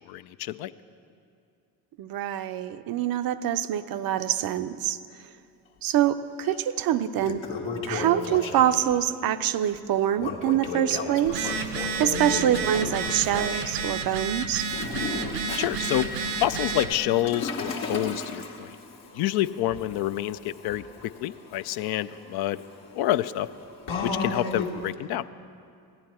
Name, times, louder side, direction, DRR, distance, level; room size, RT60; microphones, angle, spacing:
voice 1, 0.1-0.7 15.6-16.1 16.4-18.8 19.1-22.6 23.0-23.5 24.0-25.2, left 13 dB, 55° left, 14 dB, 0.5 m, -28 dB
voice 2, 2.0-5.3 5.8-7.4 7.9-14.7, right 11 dB, 50° right, 12 dB, 0.6 m, -25 dB
Toilet flush, 6.4-6.6 7.0-8.9 10.2-13.7 14.6-24.9, left 3 dB, 75° left, 1.5 m, -35 dB
Telephone, 11.3-16.9, right 5 dB, 75° right, 0.8 m, -31 dB
16.0 x 10.5 x 4.3 m, 2.4 s
hypercardioid pair, 55°, 47 cm